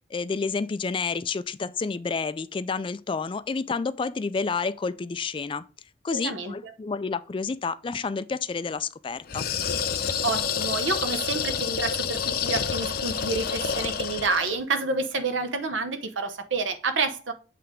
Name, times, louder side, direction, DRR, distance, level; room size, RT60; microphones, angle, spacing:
voice 1, 0.1-5.6 6.0-9.4, left 4 dB, 25° left, 0.3 m, -29 dB
voice 2, 6.1-6.7 10.0-17.3, right 3 dB, 85° right, 1.0 m, -29 dB
sound 1, 9.3-14.6, left 7 dB, 55° left, 0.6 m, -28 dB
7.9 x 3.3 x 5.0 m
head